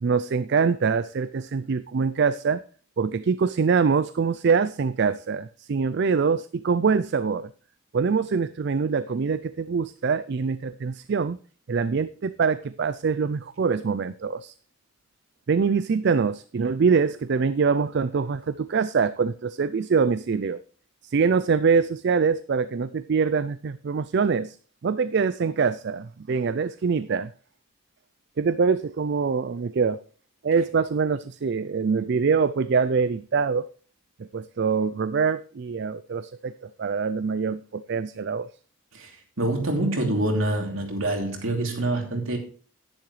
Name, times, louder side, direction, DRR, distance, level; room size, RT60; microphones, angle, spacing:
voice 1, 0.0-2.6 3.0-7.5 7.9-11.4 11.7-14.5 15.5-20.6 21.1-24.6 24.8-27.3 28.4-30.0 30.4-33.7 34.2-36.5 36.8-38.5, right 5 dB, 50° right, 0.4 m, -24 dB
voice 2, 39.4-42.4, right 1 dB, 70° right, 2.8 m, -26 dB
10.5 x 10.5 x 3.2 m
head